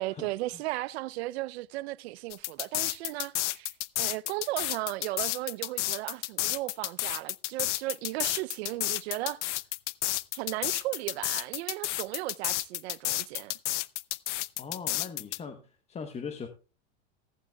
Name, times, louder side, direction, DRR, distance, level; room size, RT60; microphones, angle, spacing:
voice 1, 0.0-3.7 4.0-9.4 10.3-13.5, right 19 dB, 60° right, 0.6 m, -35 dB
sound 1, 2.3-15.4, left 17 dB, 80° left, 0.7 m, -31 dB
voice 2, 14.6-16.5, left 5 dB, 20° left, 1.0 m, -40 dB
15.0 x 14.5 x 2.2 m
supercardioid pair, 135°, 35 cm